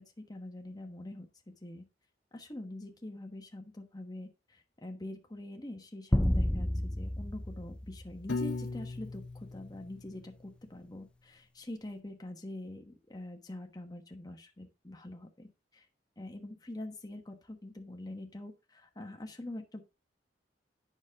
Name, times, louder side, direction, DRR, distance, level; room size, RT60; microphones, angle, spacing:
voice 1, 0.0-1.9 2.3-15.8 16.2-19.8, left 1 dB, 20° left, 4 dB, 1.2 m, -45 dB
sound 1, 6.1-8.7, left 1 dB, 5° left, 0.3 m, -31 dB
Piano, 8.3-10.5, left 3 dB, 90° left, 1.4 m, -38 dB
8.9 x 6.2 x 3.6 m, 0.28 s
head